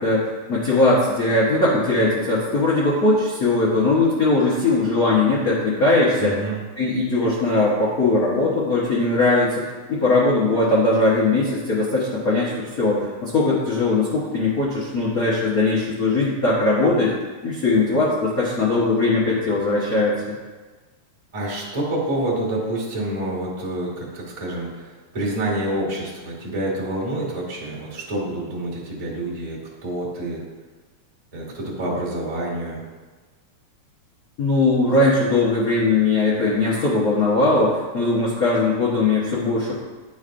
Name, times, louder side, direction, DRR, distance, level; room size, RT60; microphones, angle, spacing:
voice 1, 0.0-6.3 6.8-9.6 9.9-17.1 17.4-20.4 34.4-39.7, left 2 dB, 75° left, -7 dB, 0.8 m, -20 dB
voice 2, 6.2-6.6 21.3-30.4 31.3-32.8, right 1 dB, 15° right, -4 dB, 1.2 m, -27 dB
11.0 x 5.1 x 2.5 m, 1.4 s
omnidirectional pair, 3.4 m